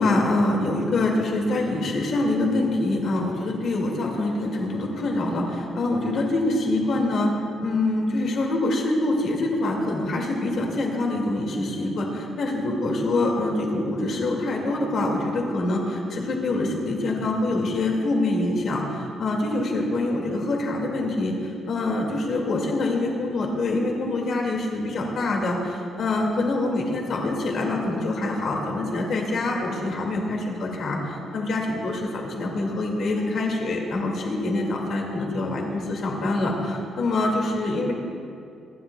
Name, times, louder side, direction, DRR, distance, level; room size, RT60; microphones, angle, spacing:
voice 1, 0.0-7.3 7.6-21.4 21.7-37.9, left 2 dB, 55° left, 0 dB, 2.2 m, -25 dB
24.5 x 10.5 x 2.3 m, 2.4 s
cardioid pair, 150°, 0 cm